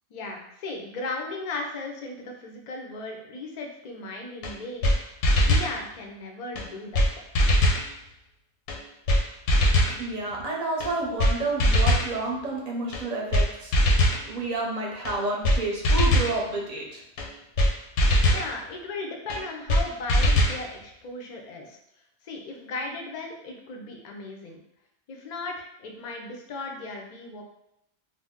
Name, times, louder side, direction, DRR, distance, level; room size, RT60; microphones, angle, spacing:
voice 1, 0.1-7.1 18.3-21.8 22.2-24.6 25.1-27.4, left 3 dB, 55° left, 2 dB, 0.5 m, -36 dB
sound 1, 4.4-4.5 4.8-5.0 5.2-5.7 6.6-6.7 6.9-7.1 7.3-7.8 8.7-8.8 9.1-9.2 9.5-10.0 10.8-10.9 11.2-11.3 11.6-12.1 12.9-13.0 13.3-13.5 13.7-14.2 15.0-15.1 15.4-15.6 15.8-16.3 17.2-17.3 17.6-17.7 18.0-18.5 19.3-19.4 19.7-19.8 20.1-20.6, left 1 dB, 85° left, 0.9 m, -20 dB
voice 2, 10.0-13.7 14.2-17.0, right 2 dB, 45° right, -1 dB, 0.6 m, -30 dB
2.6 x 2.0 x 3.5 m, 0.81 s
omnidirectional pair, 1.1 m